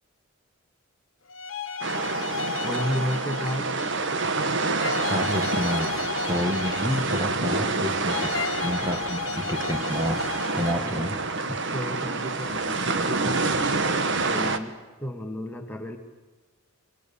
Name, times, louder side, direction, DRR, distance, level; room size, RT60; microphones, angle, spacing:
sound 1, 1.3-4.1 4.8-7.6 8.1-11.0, left 6 dB, 60° left, 1.1 m, -34 dB
sound 2, 1.8-14.6, right 3 dB, 55° right, 1.4 m, -27 dB
voice 1, 2.6-3.7 10.5-11.2 11.7-13.5 14.2-16.0, equal, 10° left, 4 dB, 1.9 m, -32 dB
voice 2, 5.1-6.0 6.3-8.3 8.6-10.2 10.5-11.2, equal, 15° right, 5 dB, 1.9 m, -29 dB
28.5 x 22.5 x 7.2 m, 1.2 s
head